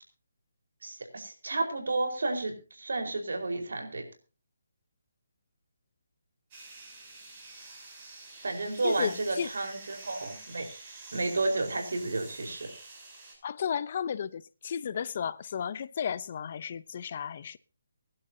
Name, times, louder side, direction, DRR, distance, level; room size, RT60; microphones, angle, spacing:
voice 1, 0.8-4.0 8.4-10.7 11.1-12.7, right 2 dB, 75° right, 4.6 m, -31 dB
sound 1, 6.5-13.3, right 3 dB, 30° right, 7.7 m, -48 dB
voice 2, 8.8-9.5 13.4-17.6, left 7 dB, 45° left, 0.7 m, -33 dB
24.5 x 11.0 x 2.8 m
hypercardioid pair, 155°, 0 cm